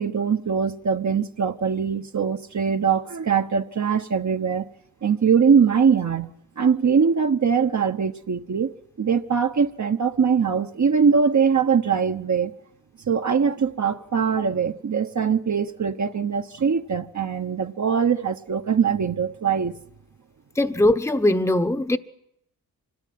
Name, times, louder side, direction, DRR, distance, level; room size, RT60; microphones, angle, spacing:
voice 1, 0.0-4.7 5.0-12.5 13.1-19.8, right 6 dB, 50° right, 1.1 m, -22 dB
voice 2, 20.6-22.0, left 1 dB, 5° left, 1.0 m, -20 dB
25.5 x 17.5 x 9.4 m
wide cardioid pair, 85°, 38 cm